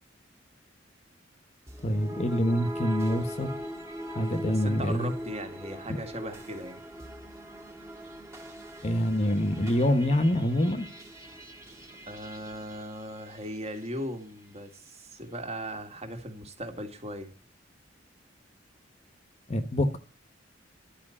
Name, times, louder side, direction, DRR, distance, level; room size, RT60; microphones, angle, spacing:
sound 1, 1.7-14.0, equal, 15° right, 1.7 m, -41 dB
voice 1, 1.8-3.5 4.1-5.1 8.8-10.9 19.5-20.0, left 1 dB, 35° left, 1.0 m, -26 dB
voice 2, 4.4-6.8 12.1-17.3, right 1 dB, 35° right, 2.1 m, -38 dB
11.5 x 5.8 x 8.5 m
head